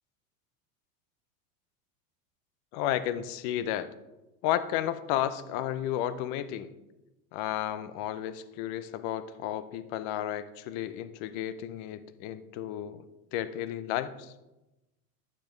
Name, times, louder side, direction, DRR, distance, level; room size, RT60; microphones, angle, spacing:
voice 1, 2.7-3.9 4.4-6.7 7.3-13.0 13.3-14.3, left 12 dB, 50° left, 14 dB, 0.7 m, -32 dB
9.6 x 7.1 x 3.2 m, 1.0 s
supercardioid pair, 115°, 45 cm